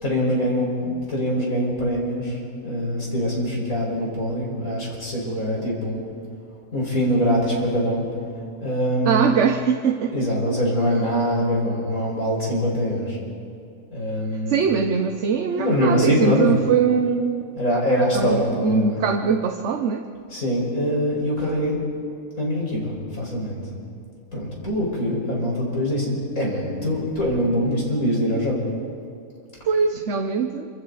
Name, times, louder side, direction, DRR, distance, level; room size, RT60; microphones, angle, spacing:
voice 1, 0.0-6.0 6.7-8.0 8.6-9.3 10.1-13.2 13.9-14.6 15.5-16.6 17.6-19.0 20.3-21.8 22.4-23.6 24.3-28.6, equal, 70° left, -3 dB, 5.7 m, -23 dB
voice 2, 9.0-10.1 14.5-17.5 18.1-20.1 29.6-30.7, right 6 dB, 60° right, 5 dB, 1.1 m, -22 dB
27.0 x 25.0 x 4.1 m, 2.4 s
omnidirectional pair, 1.5 m